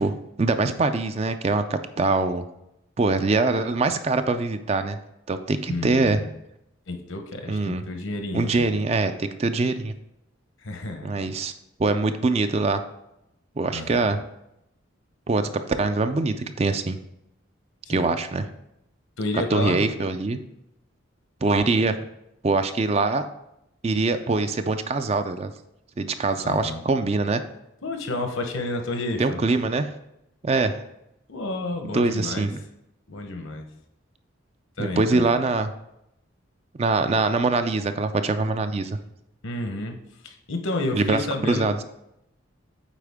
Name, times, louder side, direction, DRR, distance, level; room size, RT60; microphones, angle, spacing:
voice 1, 0.0-2.5 3.0-5.0 5.3-6.2 7.5-7.8 8.3-9.9 11.0-11.5 11.8-12.8 13.6-14.2 15.3-17.0 17.9-18.4 19.3-20.4 21.4-22.0 22.4-23.3 23.8-25.5 26.0-27.4 29.2-29.9 30.4-30.8 31.9-32.6 34.8-35.7 36.8-38.9 40.9-41.8, right 3 dB, 30° right, 9 dB, 0.4 m, -23 dB
voice 2, 5.7-6.3 6.9-8.7 10.6-11.1 13.7-14.1 17.8-18.1 19.2-19.9 26.4-26.8 27.8-29.4 31.3-32.5 33.1-33.6 34.8-35.3 39.4-40.0 40.2-41.7, left 2 dB, 80° left, 5 dB, 0.9 m, -30 dB
8.3 x 4.5 x 3.5 m, 0.84 s
head